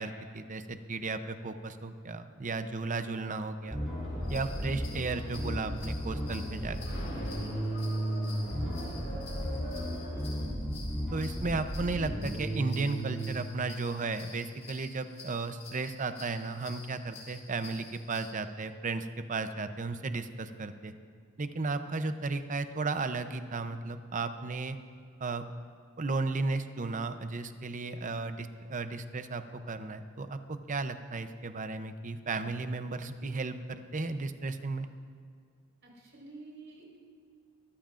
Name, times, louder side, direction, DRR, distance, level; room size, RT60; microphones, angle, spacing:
voice 1, 0.0-3.8 4.3-6.8 11.1-21.0 21.4-24.8 25.2-25.4 26.0-34.9, right 3 dB, 40° right, 9 dB, 0.7 m, -34 dB
sound 1, 3.6-10.4, equal, 65° left, 4.5 m, -45 dB
Bass guitar, 3.7-13.3, equal, 5° right, 4.0 m, -34 dB
sound 2, 4.2-18.3, left 4 dB, 30° left, 3.3 m, -50 dB
voice 2, 8.6-9.4 35.9-37.0, right 1 dB, 55° right, -2 dB, 4.5 m, -49 dB
23.0 x 14.5 x 2.5 m, 2.2 s
head